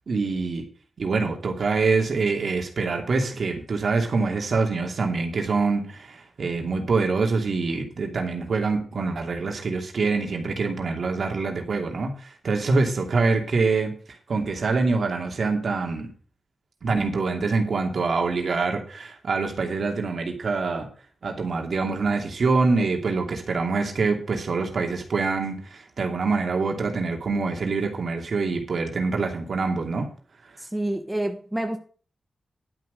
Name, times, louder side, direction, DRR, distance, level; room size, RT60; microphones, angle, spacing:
voice 1, 0.1-0.6 1.0-16.1 16.8-20.9 21.2-30.1, right 4 dB, 70° right, 2 dB, 2.7 m, -25 dB
voice 2, 30.6-31.8, right 1 dB, 10° right, 5 dB, 1.4 m, -28 dB
11.5 x 6.2 x 6.4 m, 0.41 s
cardioid pair, 60°, 0 cm